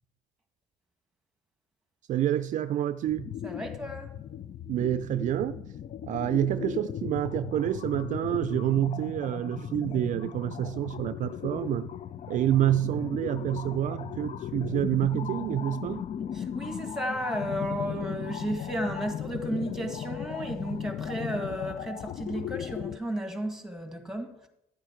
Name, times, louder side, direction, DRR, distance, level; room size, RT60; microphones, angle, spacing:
voice 1, 2.1-3.4 4.7-5.7 6.0-11.9 12.3-16.1, right 12 dB, 55° right, 0.4 m, -28 dB
sound 1, 3.1-23.0, left 10 dB, 45° left, 0.4 m, -37 dB
voice 2, 3.4-4.1 16.3-24.5, equal, 5° right, 2.0 m, -33 dB
11.5 x 8.8 x 4.5 m
supercardioid pair, 85°, 15 cm